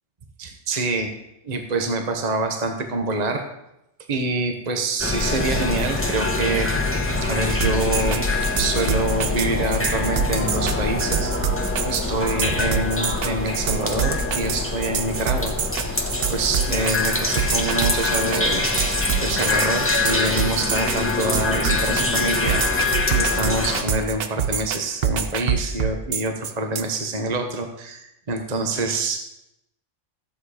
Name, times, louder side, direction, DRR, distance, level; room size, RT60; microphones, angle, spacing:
voice 1, 0.4-1.1 1.4-3.4 4.1-6.7 7.2-8.3 8.6-11.3 11.8-15.5 15.9-18.6 18.9-22.6 23.1-29.3, right 2 dB, 35° right, 4 dB, 1.2 m, -26 dB
sound 1, 5.0-23.8, left 2 dB, 10° left, 1.1 m, -24 dB
sound 2, 7.5-26.8, right 8 dB, 55° right, 0.9 m, -26 dB
14.0 x 7.9 x 4.9 m, 0.84 s
omnidirectional pair, 1.3 m